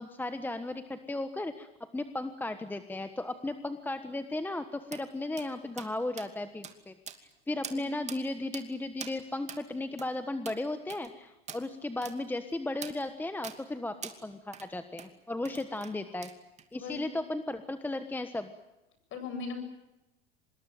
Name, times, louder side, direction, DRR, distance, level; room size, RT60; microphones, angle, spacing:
voice 1, 0.0-6.9 7.2-16.3 16.7-18.5, left 2 dB, 5° left, 9 dB, 1.3 m, -35 dB
sound 1, 4.9-5.0 5.4-5.5 5.8-5.9 6.2-6.3 6.6-6.8 7.1-7.3 7.6-7.8 8.1-8.2 8.5-8.7 9.0-9.2 9.5-9.6 10.0-10.1 10.5-10.6 10.9-11.1 11.5-11.6 12.0-12.2 12.8-13.0 13.4-13.6 14.0-14.2 14.5-14.7 15.0-15.1 15.5-15.9 16.2-16.7, right 6 dB, 20° right, 2.6 m, -43 dB
voice 2, 16.7-17.2 19.1-19.6, left 5 dB, 40° left, 9 dB, 8.0 m, -39 dB
26.0 x 20.5 x 9.3 m, 0.96 s
supercardioid pair, 120°, 31 cm